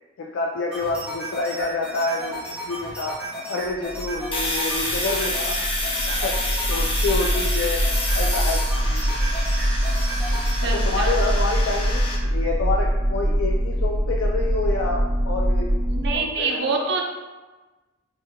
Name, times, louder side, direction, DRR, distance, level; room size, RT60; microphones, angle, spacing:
voice 1, 0.2-3.2 3.5-5.6 6.0-6.4 6.7-7.8 8.1-8.6 8.9-9.1 10.6-15.8 16.1-16.9, left 3 dB, 75° left, 0 dB, 0.4 m, -28 dB
sound 1, 0.7-10.6, right 1 dB, 5° right, 1.4 m, -34 dB
sound 2, 3.9-16.1, equal, 85° right, 1.0 m, -24 dB
Domestic sounds home sounds, 4.3-12.2, left 2 dB, 25° left, 0.7 m, -29 dB
voice 2, 10.6-11.1 15.9-17.0, right 4 dB, 60° right, 1 dB, 0.6 m, -26 dB
5.1 x 3.6 x 2.2 m, 1.2 s
head